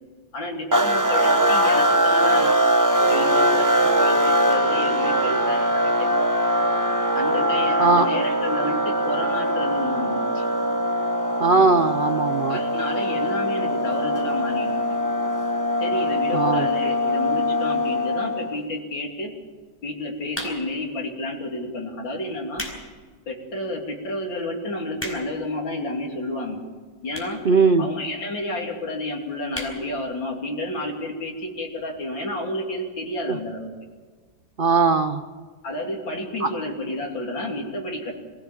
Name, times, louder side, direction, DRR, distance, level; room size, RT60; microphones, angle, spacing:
voice 1, 0.3-2.6 3.0-6.1 7.1-10.5 12.5-15.0 15.8-19.3 19.8-22.6 23.3-26.6 27.0-27.4 27.8-33.7 35.6-38.1, left 1 dB, 75° left, 0 dB, 3.7 m, -30 dB
sound 1, 0.7-18.6, equal, 15° right, 0.6 m, -22 dB
voice 2, 11.4-12.6 16.3-16.7 27.4-27.9 33.3-33.4 34.6-35.2 36.4-36.5, right 4 dB, 70° right, 8 dB, 0.5 m, -19 dB
sound 2, 20.3-20.9 21.6-21.8 22.3-22.8 23.3-23.4 24.0-24.1 24.3-24.4 24.6-25.5 26.2-26.3 27.1-27.4 27.7-27.8 28.0-28.1 28.4-28.5 28.8-29.0 29.5-29.8 30.2-30.3 30.5-30.6, left 1 dB, 5° left, 4.6 m, -34 dB
23.0 x 16.0 x 7.4 m, 1.5 s
omnidirectional pair, 2.1 m